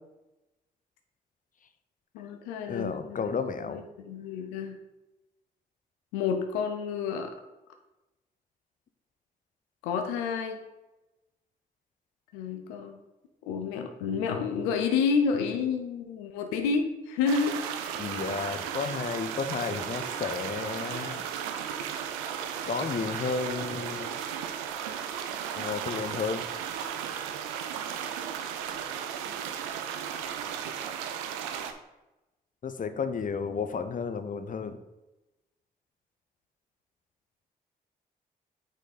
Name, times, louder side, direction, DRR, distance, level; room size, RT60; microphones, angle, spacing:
voice 1, 2.1-3.3 3.6-4.8 6.1-7.3 9.8-10.6 12.3-13.0 13.4-17.6, left 5 dB, 90° left, 5 dB, 0.6 m, -29 dB
voice 2, 2.7-3.8 18.0-21.2 22.6-24.2 25.6-26.4 32.6-34.8, left 5 dB, 40° left, 10 dB, 0.7 m, -32 dB
Water Gush Under Bridge, 17.3-31.7, right 8 dB, 90° right, 0.5 m, -35 dB
6.3 x 5.1 x 4.0 m, 1.0 s
hypercardioid pair, 40°, 20 cm